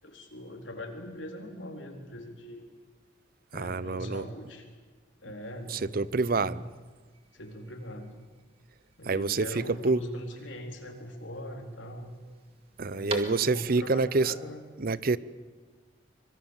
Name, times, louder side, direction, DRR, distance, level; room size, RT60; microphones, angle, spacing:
voice 1, 0.0-2.7 3.5-4.7 5.2-6.0 6.3-6.6 7.3-8.2 9.0-12.1 12.9-14.6, equal, 85° left, 3 dB, 4.1 m, -41 dB
voice 2, 3.5-4.3 5.7-6.6 9.1-10.0 12.8-14.3 14.8-15.2, right 3 dB, 50° right, 18 dB, 0.6 m, -27 dB
sound 1, 5.4-13.9, right 3 dB, 30° right, 2.2 m, -46 dB
25.0 x 23.0 x 7.3 m, 1.5 s
head